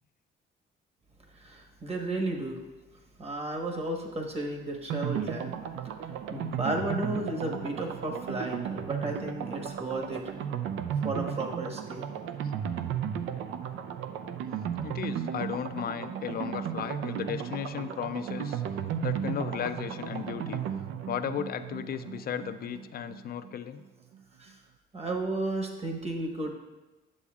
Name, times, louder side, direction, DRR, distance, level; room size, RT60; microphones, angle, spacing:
voice 1, 1.3-2.6 3.2-5.6 6.0-10.3 11.0-12.0 24.4-24.5 24.9-26.5, right 2 dB, 30° right, 1 dB, 1.2 m, -33 dB
sound 1, 4.9-23.5 23.8-23.9 24.1-24.2, right 8 dB, 85° right, 0.5 m, -35 dB
voice 2, 14.8-18.6 19.0-20.6 21.1-23.8, left 9 dB, 50° left, 11 dB, 0.4 m, -35 dB
9.8 x 6.9 x 2.4 m, 1.1 s
cardioid pair, 90°, 20 cm